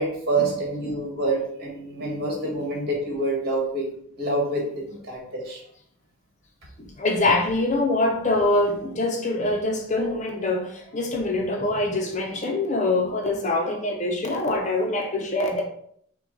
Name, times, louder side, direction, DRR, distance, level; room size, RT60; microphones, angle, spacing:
voice 1, 0.0-3.8 4.2-4.6 4.9-5.6, right 2 dB, 50° right, -2 dB, 1.7 m, -27 dB
voice 2, 6.8-15.6, left 2 dB, 35° left, 2 dB, 0.6 m, -24 dB
5.8 x 2.3 x 3.8 m, 0.66 s
head